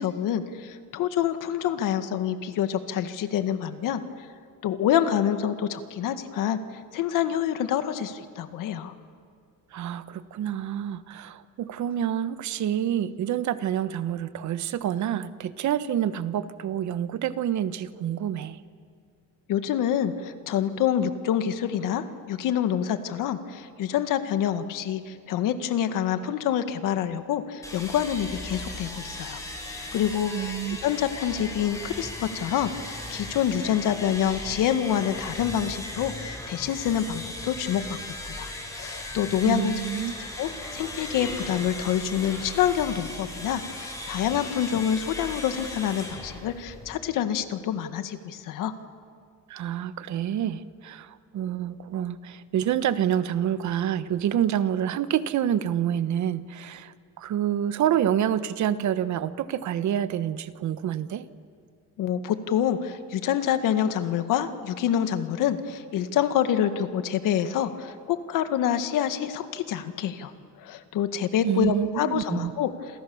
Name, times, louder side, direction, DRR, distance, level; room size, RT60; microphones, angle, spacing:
voice 1, 0.0-4.0 4.6-6.6 6.9-8.9 19.5-29.4 29.9-38.0 38.3-39.7 40.4-48.7 62.0-70.3 70.6-72.7, left 9 dB, 85° left, 9 dB, 1.9 m, -27 dB
voice 2, 9.7-18.6 30.3-30.8 39.4-40.1 49.5-61.2 71.4-72.5, right 10 dB, 65° right, 13 dB, 1.2 m, -27 dB
sound 1, 27.6-47.1, left 1 dB, 10° left, 5.4 m, -37 dB
28.5 x 28.0 x 7.1 m, 2.2 s
cardioid pair, 135°, 32 cm